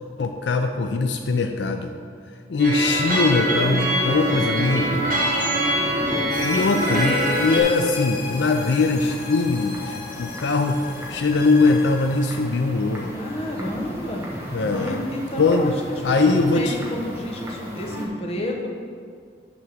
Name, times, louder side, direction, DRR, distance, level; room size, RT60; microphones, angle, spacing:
voice 1, 0.2-1.9 2.5-5.1 6.4-10.8 11.1-13.1 14.5-15.0 15.4-15.7 16.0-16.8, left 3 dB, 80° left, 5 dB, 0.5 m, -21 dB
sound 1, 2.6-7.6, right 1 dB, 45° right, 1.6 m, -23 dB
sound 2, 2.7-18.1, equal, 15° right, 1.0 m, -36 dB
voice 2, 3.6-4.5 13.1-14.3 14.7-18.7, left 1 dB, 35° left, 0 dB, 1.0 m, -31 dB
sound 3, 6.3-12.4, left 5 dB, 55° left, 1.2 m, -36 dB
9.5 x 3.6 x 6.6 m, 2.1 s
head